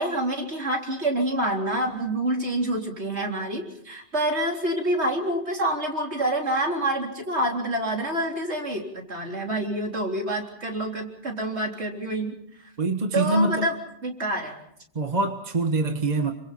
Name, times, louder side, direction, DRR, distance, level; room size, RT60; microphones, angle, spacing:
voice 1, 0.0-12.3 13.1-14.6, right 1 dB, 60° right, 1 dB, 4.1 m, -27 dB
voice 2, 12.8-13.7 14.9-16.3, right 2 dB, 35° right, 6 dB, 1.4 m, -24 dB
28.5 x 25.5 x 4.3 m, 0.71 s
omnidirectional pair, 1.3 m